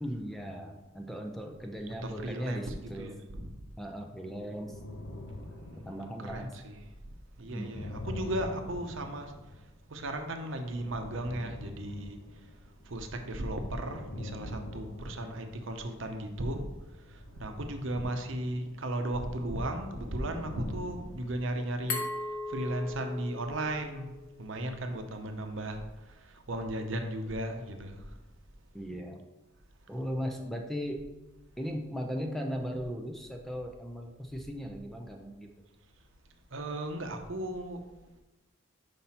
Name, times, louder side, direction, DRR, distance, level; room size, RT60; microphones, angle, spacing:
voice 1, 0.0-3.2 3.8-4.8 5.7-6.5 7.5-7.9 28.7-29.2 29.9-31.0 31.6-35.5, equal, ahead, 3 dB, 0.5 m, -37 dB
voice 2, 2.0-2.7 3.0-3.5 4.2-4.4 6.2-6.8 7.4-9.3 9.9-12.2 12.9-16.7 17.4-22.0 22.5-24.1 24.4-25.8 26.5-28.1 36.5-37.8, right 1 dB, 65° right, 5 dB, 0.8 m, -35 dB
sound 1, 4.5-6.7 7.4-10.1 10.6-13.0 13.4-16.2 16.8-21.3, left 1 dB, 60° left, 0.8 m, -45 dB
Glass, 21.9-24.7, left 3 dB, 75° left, 1.1 m, -38 dB
5.7 x 5.4 x 4.3 m, 1.1 s
head